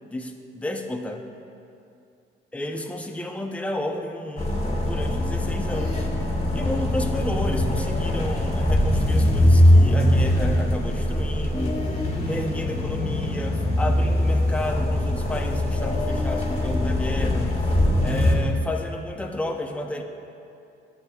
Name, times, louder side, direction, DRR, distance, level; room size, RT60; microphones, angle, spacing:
voice 1, 0.1-1.2 2.5-6.1 6.5-11.8 12.3-20.0, left 1 dB, 5° left, 3 dB, 0.6 m, -32 dB
sound 1, 4.4-18.3, left 1 dB, 30° left, 1.5 m, -22 dB
13.0 x 7.8 x 2.3 m, 2.6 s
cardioid pair, 90°, 20 cm